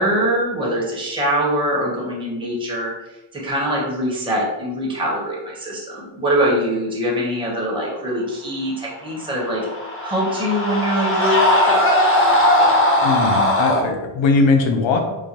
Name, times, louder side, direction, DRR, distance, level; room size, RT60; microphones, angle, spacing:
voice 1, 0.0-2.9 3.4-9.6 10.0-12.0, equal, 10° right, -5 dB, 0.8 m, -23 dB
sound 1, 9.4-13.8, left 1 dB, 30° left, 0.5 m, -18 dB
voice 2, 13.0-15.0, left 3 dB, 85° left, 4 dB, 0.7 m, -19 dB
4.8 x 2.2 x 2.8 m, 1.0 s
wide cardioid pair, 160°, 45 cm